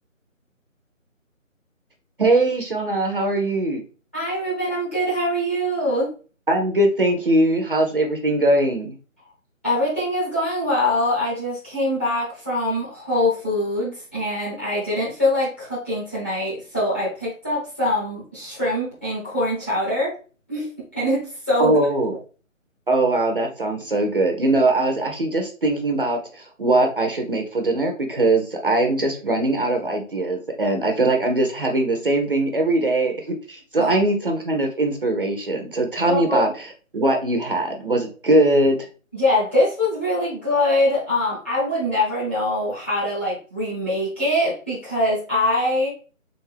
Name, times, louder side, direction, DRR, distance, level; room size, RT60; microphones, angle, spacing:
voice 1, 2.2-3.8 6.5-9.0 21.6-22.2 22.9-38.9, right 2 dB, 40° right, 3 dB, 0.7 m, -21 dB
voice 2, 4.1-6.1 9.6-20.1 20.5-21.8 33.8-33.9 36.1-36.4 39.1-45.9, left 1 dB, 10° left, -9 dB, 0.9 m, -23 dB
3.8 x 3.6 x 3.3 m, 0.38 s
figure-of-eight pair, 160°, 41 cm